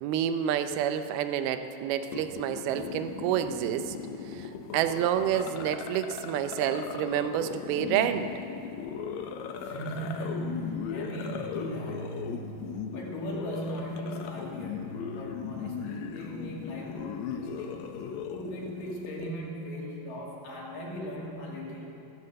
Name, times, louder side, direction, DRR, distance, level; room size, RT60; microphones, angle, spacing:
voice 1, 0.0-4.0 4.3-8.3, right 10 dB, 85° right, 9 dB, 2.6 m, -29 dB
sound 1, 2.1-19.3, left 6 dB, 85° left, 1.6 m, -38 dB
voice 2, 9.6-17.9 18.3-21.9, equal, 65° left, -3 dB, 3.7 m, -38 dB
16.5 x 9.8 x 7.6 m, 2.7 s
omnidirectional pair, 4.4 m